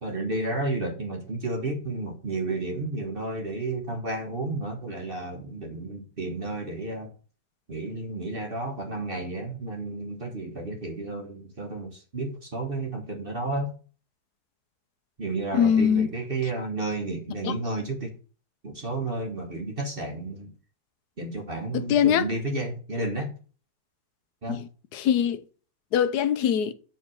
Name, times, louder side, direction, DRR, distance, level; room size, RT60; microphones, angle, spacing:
voice 1, 0.0-7.1 7.7-13.7 15.2-18.1 18.6-20.5 21.2-23.3 24.4-24.6, right 2 dB, 40° right, 1.4 m, -32 dB
voice 2, 15.5-16.1 17.4-17.5 21.7-22.3 24.5-25.4 25.9-26.7, left 8 dB, 80° left, 1.3 m, -23 dB
7.5 x 4.0 x 6.2 m
omnidirectional pair, 1.7 m